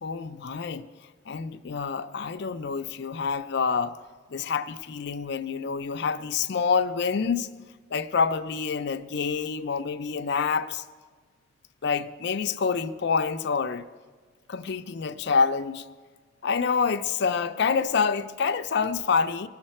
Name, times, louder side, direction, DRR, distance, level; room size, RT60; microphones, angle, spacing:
voice 1, 0.0-0.9 1.3-4.0 4.3-7.5 7.9-10.8 11.8-13.8 14.5-15.8 16.4-19.5, left 5 dB, 60° left, 0.5 m, -27 dB
19.0 x 6.6 x 4.3 m
head